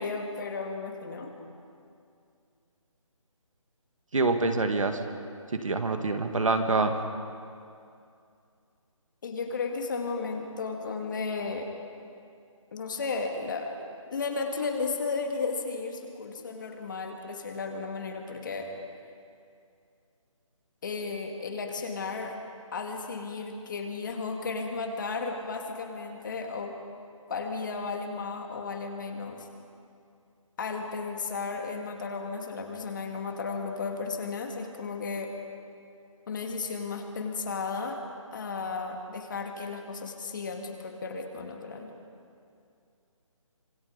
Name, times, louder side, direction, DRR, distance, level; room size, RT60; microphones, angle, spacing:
voice 1, 0.0-1.3 9.2-11.7 12.7-18.7 20.8-22.4 22.7-26.7 27.3-29.5 30.6-35.3 36.3-38.0 38.3-41.9, left 4 dB, 35° left, 3 dB, 2.2 m, -34 dB
voice 2, 4.1-5.0 5.5-6.9, right 3 dB, 70° right, 6 dB, 2.4 m, -26 dB
26.5 x 21.5 x 5.3 m, 2.4 s
hypercardioid pair, 170°, 17 cm